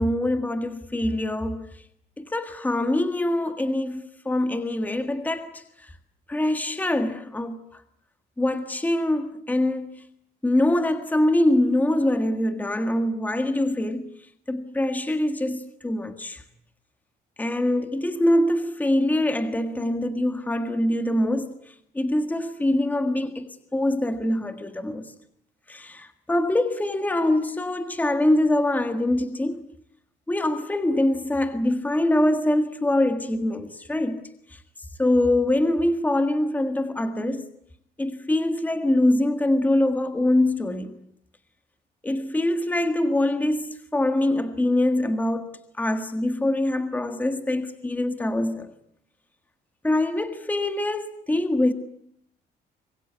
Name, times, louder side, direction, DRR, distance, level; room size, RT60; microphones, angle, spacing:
voice 1, 0.0-1.7 2.2-5.9 6.3-7.8 8.4-10.0 10.4-14.1 14.5-16.4 17.4-25.1 25.7-29.7 30.3-34.6 35.0-37.5 38.0-41.0 42.0-48.7 49.8-51.7, left 1 dB, 10° left, 1.7 m, -24 dB
25.5 x 22.5 x 9.5 m
cardioid pair, 145°, 18 cm